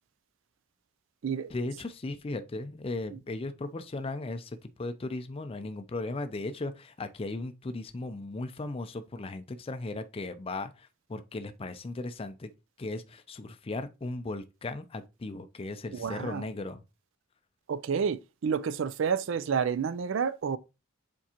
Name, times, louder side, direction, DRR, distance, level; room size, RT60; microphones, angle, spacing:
voice 1, 1.5-12.5 12.8-16.8, left 2 dB, 25° left, 0.4 m, -37 dB
voice 2, 15.9-16.5 17.7-20.6, right 6 dB, 60° right, 0.4 m, -30 dB
7.3 x 4.5 x 2.9 m
head